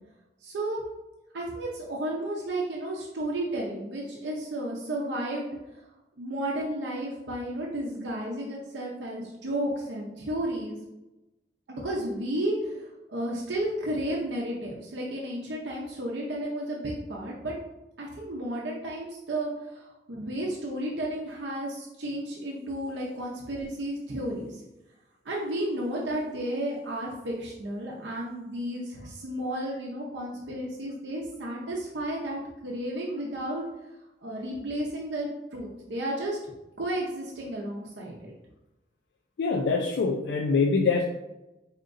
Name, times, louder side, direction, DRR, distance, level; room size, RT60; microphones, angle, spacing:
voice 1, 0.4-0.8 1.3-5.6 6.2-10.8 11.7-17.5 18.0-24.6 25.2-33.6 34.2-36.4 36.8-38.3, right 1 dB, 85° right, -3 dB, 0.6 m, -32 dB
voice 2, 39.4-41.1, left 4 dB, 80° left, 1 dB, 0.4 m, -24 dB
4.6 x 2.8 x 2.5 m, 0.99 s
head